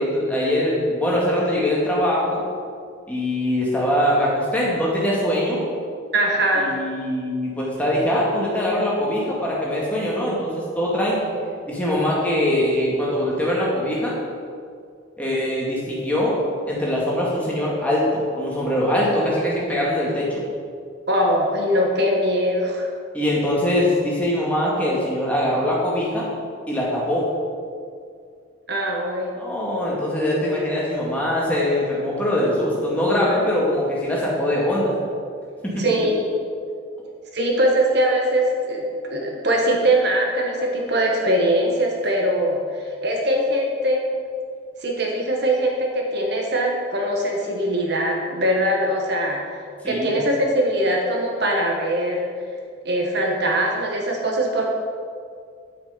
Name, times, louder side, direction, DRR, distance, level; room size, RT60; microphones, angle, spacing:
voice 1, 0.0-2.4 3.1-5.6 6.5-11.3 11.7-14.2 15.2-20.4 23.1-26.3 26.7-27.3 29.4-34.9 35.6-35.8 49.8-50.2, left 1 dB, 5° left, -6 dB, 2.2 m, -22 dB
voice 2, 6.1-6.8 21.1-22.9 28.7-29.3 35.8-36.2 37.3-44.0 44.8-49.4 49.8-52.3 52.8-54.7, right 1 dB, 55° right, 0 dB, 1.4 m, -21 dB
9.6 x 8.0 x 5.2 m, 2.2 s
head